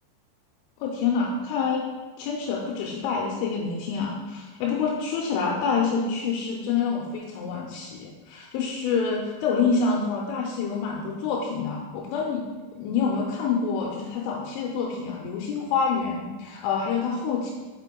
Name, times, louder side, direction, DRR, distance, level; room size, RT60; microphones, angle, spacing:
voice 1, 0.8-1.9 2.2-12.5 12.7-17.5, left 5 dB, 80° left, -2 dB, 3.0 m, -27 dB
8.2 x 8.0 x 2.2 m, 1.3 s
omnidirectional pair, 5.8 m